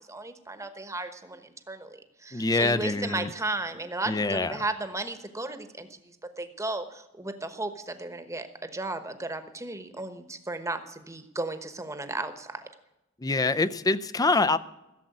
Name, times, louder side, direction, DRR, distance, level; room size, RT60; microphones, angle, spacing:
voice 1, 0.1-6.0 6.4-12.6, right 2 dB, 15° right, 9 dB, 1.1 m, -35 dB
voice 2, 2.3-3.3 4.1-4.5 13.2-14.6, left 3 dB, 20° left, 14 dB, 0.5 m, -25 dB
15.5 x 7.3 x 9.4 m, 0.93 s
head